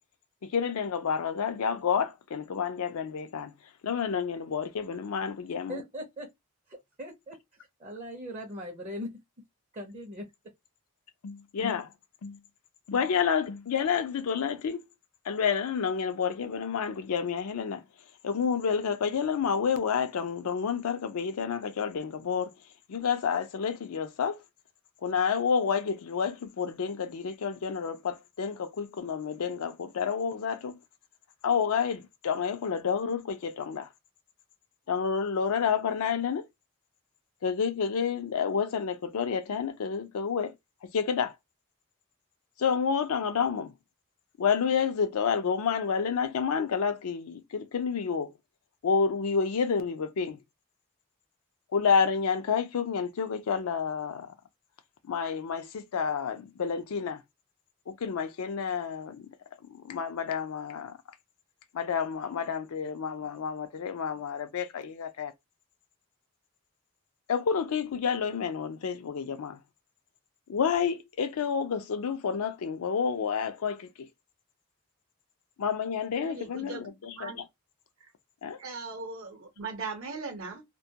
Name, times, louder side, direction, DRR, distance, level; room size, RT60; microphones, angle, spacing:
voice 1, 0.4-3.5 3.8-5.8 11.2-11.9 12.2-12.4 12.9-14.8 15.2-17.8 18.2-22.5 22.9-24.4 25.0-30.8 31.4-33.9 34.9-36.5 37.4-40.5 40.8-41.3 42.6-43.7 44.4-48.3 48.8-50.4 51.7-54.3 55.0-57.2 57.9-59.3 59.7-61.0 61.7-65.3 67.3-69.6 70.5-74.1 75.6-77.5 78.4-78.6, left 6 dB, 80° left, 0.4 m, -29 dB
voice 2, 5.7-6.3 6.7-9.2 9.7-10.3, equal, 30° right, 0.5 m, -40 dB
voice 3, 76.2-76.8 77.1-77.4 78.0-78.1 78.6-80.6, right 4 dB, 70° right, 0.7 m, -39 dB
2.2 x 2.2 x 2.7 m
head